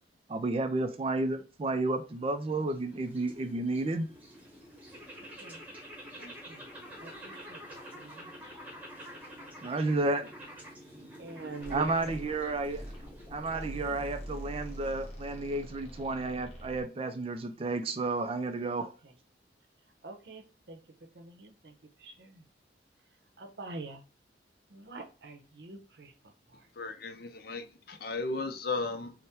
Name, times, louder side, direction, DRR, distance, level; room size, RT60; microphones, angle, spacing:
voice 1, 0.3-4.1 9.6-10.3 11.7-12.8 13.3-18.9, right 2 dB, 30° right, 0.3 m, -31 dB
sound 1, 2.0-15.3, equal, 10° right, 1.0 m, -49 dB
voice 2, 6.2-6.7 7.0-8.6 11.2-12.2 13.5-14.1 18.8-19.2 20.0-20.8 21.1-22.5 23.4-24.0 24.7-26.1 26.5-26.7, right 3 dB, 65° right, 0.7 m, -45 dB
sound 2, 11.6-16.8, equal, 35° left, 1.0 m, -44 dB
voice 3, 26.8-29.1, left 3 dB, 55° left, 0.5 m, -35 dB
3.4 x 2.1 x 4.2 m
head